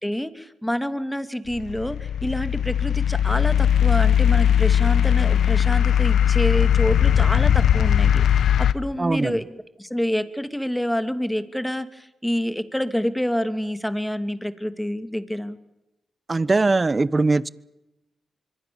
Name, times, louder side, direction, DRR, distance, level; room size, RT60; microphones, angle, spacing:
voice 1, 0.0-15.6, equal, 5° left, 11 dB, 2.7 m, -27 dB
sound 1, 1.5-8.7, left 9 dB, 80° left, 1.1 m, -19 dB
voice 2, 9.0-9.4 16.3-17.5, right 3 dB, 35° right, 20 dB, 1.0 m, -21 dB
25.5 x 23.5 x 7.1 m, 0.93 s
supercardioid pair, 50°, 0 cm